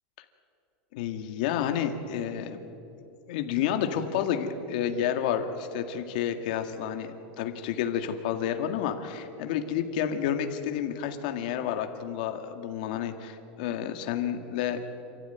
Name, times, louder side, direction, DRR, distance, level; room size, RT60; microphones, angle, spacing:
voice 1, 0.9-2.6 3.3-14.8, left 9 dB, 55° left, 6 dB, 2.1 m, -30 dB
28.0 x 15.0 x 9.4 m, 2.8 s
supercardioid pair, 180°, 5 cm